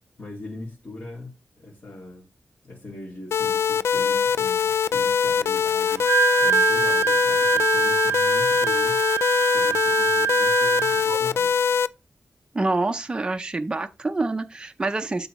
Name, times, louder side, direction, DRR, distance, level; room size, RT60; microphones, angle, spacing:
voice 1, 0.2-2.3 2.6-6.1 6.4-9.0 9.5-11.6, left 2 dB, 50° left, 3.0 m, -41 dB
sound 1, 3.3-11.9, left 7 dB, 80° left, 0.4 m, -22 dB
Wind instrument woodwind instrument, 5.9-11.2, right 7 dB, 85° right, 0.3 m, -24 dB
voice 2, 12.5-15.3, right 2 dB, 20° right, 0.6 m, -26 dB
11.5 x 3.9 x 3.1 m
wide cardioid pair, 170°, 4 cm